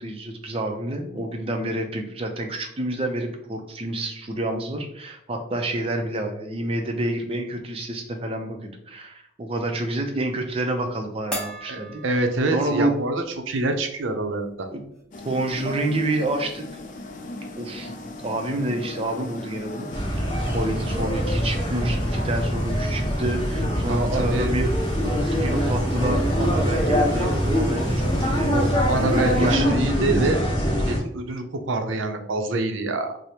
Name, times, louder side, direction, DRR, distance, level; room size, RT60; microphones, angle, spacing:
voice 1, 0.0-12.2 12.5-12.9 14.7-14.8 15.2-16.6 17.6-17.9 18.2-20.2 20.5-24.7 25.2-28.5 29.0-29.8, right 1 dB, 30° right, 4 dB, 0.4 m, -28 dB
sound 1, 11.3-12.9 13.3-13.4 15.0-15.1 15.4-16.0, right 1 dB, 5° left, 0.7 m, -36 dB
voice 2, 11.7-14.7 23.9-24.5 28.5-30.4 30.7-33.2, right 2 dB, 80° right, 6 dB, 0.5 m, -26 dB
sound 2, 15.1-29.6, left 2 dB, 40° left, 0.3 m, -38 dB
sound 3, 19.9-31.0, equal, 25° left, 1.0 m, -23 dB
4.8 x 2.0 x 2.8 m, 0.71 s
head